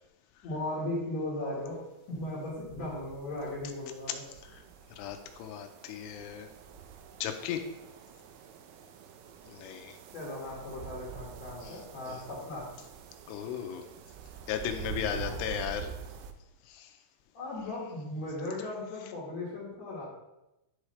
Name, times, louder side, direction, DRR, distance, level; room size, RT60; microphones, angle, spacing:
voice 1, 0.4-1.8 2.1-4.2 10.1-12.6 15.1-15.3 17.3-20.0, left 1 dB, 55° left, -6 dB, 1.9 m, -37 dB
sound 1, 2.2-16.3, right 7 dB, 90° right, 2.3 m, -46 dB
voice 2, 4.9-6.5 7.2-7.6 9.5-10.0 11.6-12.2 13.3-13.9 14.5-15.9 16.7-17.0, left 9 dB, 90° left, 6 dB, 3.1 m, -36 dB
11.0 x 4.9 x 3.2 m, 0.93 s
omnidirectional pair, 5.5 m